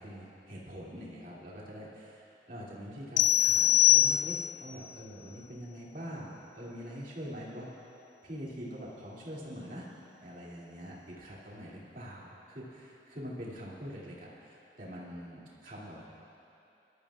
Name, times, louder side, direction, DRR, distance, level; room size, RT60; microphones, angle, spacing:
voice 1, 0.0-7.7 8.2-9.9 10.2-16.0, equal, 45° right, -6 dB, 2.7 m, -44 dB
sound 1, 3.2-4.7, left 13 dB, 40° left, 0.3 m, -23 dB
24.0 x 13.0 x 2.5 m, 2.7 s
head